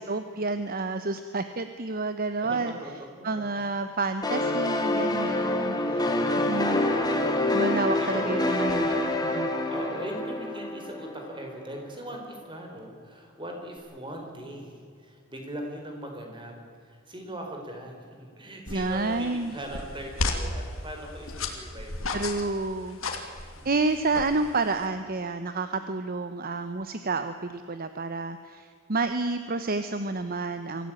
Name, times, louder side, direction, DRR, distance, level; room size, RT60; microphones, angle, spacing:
voice 1, 0.0-2.7 3.2-6.1 6.4-6.8 7.5-9.5 18.7-19.6 22.1-30.9, right 3 dB, 45° right, 10 dB, 0.9 m, -30 dB
voice 2, 2.4-3.7 5.7-6.7 8.0-8.6 9.7-16.5 16.8-22.4 23.5-23.7, right 1 dB, 25° right, 2 dB, 4.6 m, -40 dB
sound 1, 4.2-11.7, left 2 dB, 20° left, 2.4 m, -27 dB
sound 2, 18.7-24.9, left 2 dB, 70° left, 2.9 m, -35 dB
24.0 x 15.5 x 8.8 m, 2.2 s
head